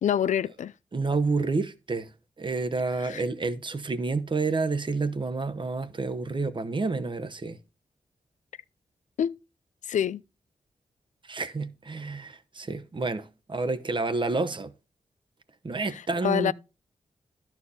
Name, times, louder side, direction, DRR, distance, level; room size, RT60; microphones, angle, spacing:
voice 1, 0.0-0.7 3.0-3.2 9.2-9.4 9.9-10.2 16.2-16.5, left 9 dB, 75° left, 0.4 m, -26 dB
voice 2, 0.9-2.1 2.4-7.6 11.2-14.7 15.6-16.5, right 3 dB, 40° right, 0.9 m, -29 dB
11.5 x 4.5 x 5.6 m
cardioid pair, 65°, 13 cm